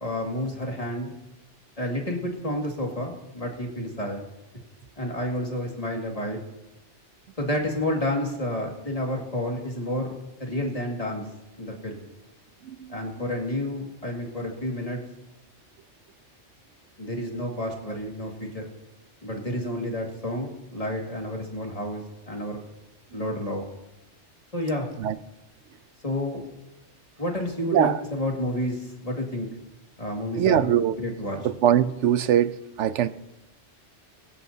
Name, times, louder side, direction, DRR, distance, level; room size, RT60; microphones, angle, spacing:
voice 1, 0.0-1.1 1.8-4.2 5.0-6.4 7.4-11.2 11.6-12.1 12.9-15.0 17.0-18.7 19.2-22.6 23.1-23.6 24.5-24.9 26.0-26.4 27.2-29.5 30.0-30.6 31.0-31.4, left 1 dB, 30° left, 0 dB, 2.2 m, -30 dB
voice 2, 12.6-13.3 25.0-25.1 27.7-28.0 30.4-31.0 31.6-33.1, right 10 dB, 90° right, 13 dB, 1.0 m, -22 dB
22.0 x 11.5 x 2.8 m, 0.96 s
omnidirectional pair, 1.2 m